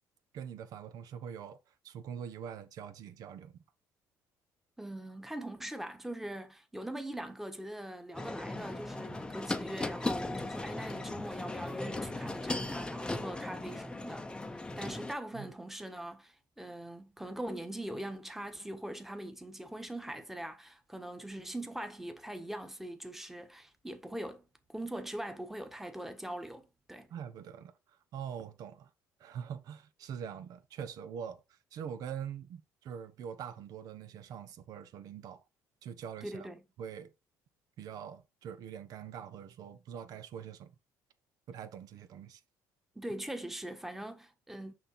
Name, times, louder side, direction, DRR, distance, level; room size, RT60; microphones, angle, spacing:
voice 1, 0.3-1.6 1.8-3.6 15.3-15.5 27.1-27.7 28.1-28.9 29.2-31.4 31.7-35.4 35.8-36.5 36.8-37.1 37.8-40.7 41.5-42.4, right 8 dB, 65° right, 1.1 m, -43 dB
voice 2, 4.8-27.1 36.2-36.6 42.9-44.7, right 1 dB, 5° right, 1.4 m, -42 dB
sound 1, 8.1-15.1, left 2 dB, 15° left, 0.8 m, -37 dB
6.6 x 5.7 x 4.4 m
cardioid pair, 105°, 7 cm